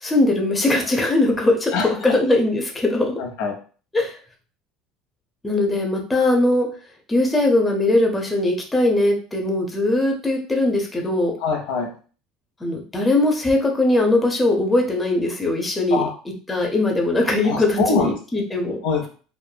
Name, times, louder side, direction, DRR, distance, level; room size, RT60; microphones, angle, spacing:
voice 1, 0.0-3.2 3.9-4.2 5.4-6.7 7.1-11.3 12.6-16.0 16.5-18.8, left 2 dB, 15° left, 1 dB, 0.6 m, -20 dB
voice 2, 1.7-2.2 3.2-3.5 11.4-11.9 15.9-16.1 17.4-18.2 18.8-19.1, left 4 dB, 80° left, 1 dB, 0.7 m, -23 dB
3.1 x 2.0 x 2.2 m, 0.39 s
supercardioid pair, 110°, 0 cm